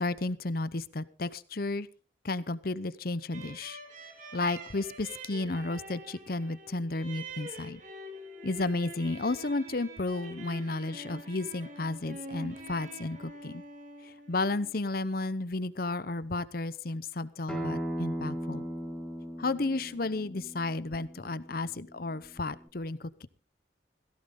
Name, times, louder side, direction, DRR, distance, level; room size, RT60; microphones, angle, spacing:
voice 1, 0.0-1.9 2.2-3.8 4.3-7.8 8.4-13.6 14.0-18.7 19.4-23.3, left 2 dB, 50° left, 16 dB, 0.8 m, -33 dB
sound 1, 3.3-14.7, right 2 dB, 40° right, 3.4 m, -46 dB
Acoustic guitar, 17.5-22.7, equal, 5° left, 3.0 m, -38 dB
17.5 x 16.0 x 3.8 m, 0.38 s
head